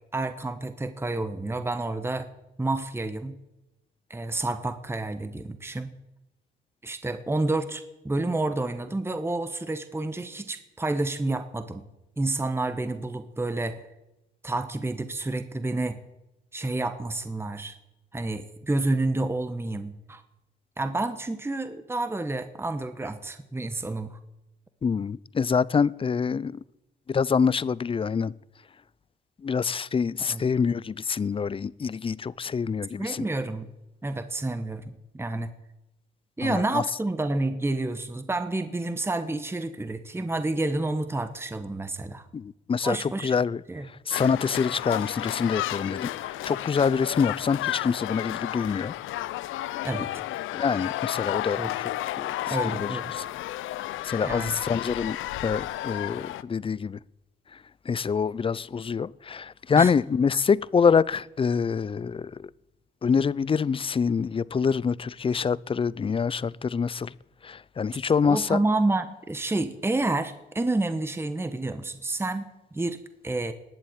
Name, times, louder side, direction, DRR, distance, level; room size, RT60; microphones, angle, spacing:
voice 1, 0.1-2.3 2.6-3.4 4.1-5.9 6.8-11.8 12.2-13.8 14.4-16.0 16.5-17.8 18.1-20.2 20.8-24.2 30.3-30.4 33.0-33.7 34.0-35.5 36.4-42.2 42.8-43.3 43.7-43.8 49.8-50.1 51.6-51.7 52.5-53.1 54.2-54.5 59.8-59.9 68.2-73.5, right 2 dB, 10° right, 1.2 m, -29 dB
voice 2, 24.8-26.6 27.1-28.3 29.4-33.3 36.4-36.8 42.3-48.9 50.5-51.9 52.2-53.2 54.0-55.2 55.4-57.0 57.5-57.6 57.9-62.5 63.0-67.1 67.4-68.6, left 6 dB, 25° left, 0.5 m, -26 dB
sound 1, 44.1-56.4, left 15 dB, 85° left, 0.6 m, -32 dB
20.0 x 7.5 x 9.1 m
cardioid pair, 90°, 20 cm